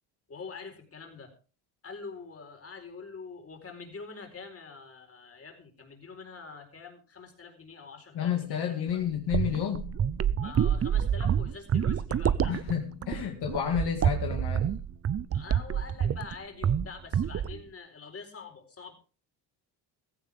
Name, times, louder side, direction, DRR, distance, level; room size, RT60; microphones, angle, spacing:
voice 1, 0.3-1.3 1.8-8.9 10.4-12.6 13.1-13.3 15.3-18.9, left 5 dB, 35° left, 3 dB, 4.4 m, -45 dB
voice 2, 8.1-9.9 12.5-14.7, left 9 dB, 65° left, 2 dB, 2.2 m, -30 dB
sound 1, 8.9-16.3 16.6-16.9 17.1-17.6, right 8 dB, 35° right, 0.7 m, -27 dB
16.0 x 15.0 x 3.6 m, 0.36 s
cardioid pair, 110°, 42 cm